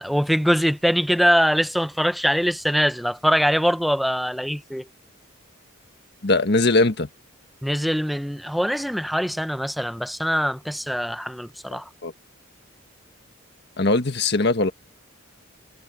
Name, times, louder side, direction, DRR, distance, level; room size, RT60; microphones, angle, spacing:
voice 1, 0.0-4.8 7.6-11.9, equal, ahead, 0.7 m, -23 dB
voice 2, 6.2-7.1 11.7-12.1 13.8-14.7, left 2 dB, 55° left, 1.6 m, -21 dB
head